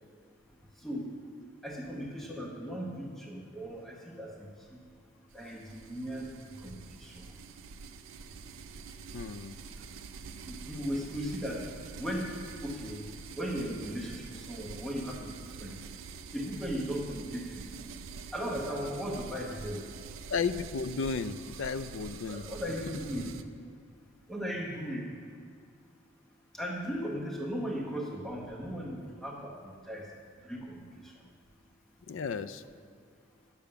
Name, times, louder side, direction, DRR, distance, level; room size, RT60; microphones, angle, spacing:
voice 1, 0.8-1.1 1.6-4.8 5.3-6.3 6.6-7.3 10.4-11.7 12.0-13.1 13.3-15.3 15.6-15.8 16.3-17.7 18.3-19.8 22.3-23.3 24.3-25.1 26.5-30.1 30.4-31.1, equal, ahead, -2 dB, 0.9 m, -37 dB
sound 1, 5.3-23.4, right 5 dB, 70° right, 0.5 m, -46 dB
voice 2, 9.1-9.6 20.3-22.5 32.1-32.6, left 5 dB, 65° left, 13 dB, 0.4 m, -33 dB
10.0 x 6.9 x 6.7 m, 2.2 s
head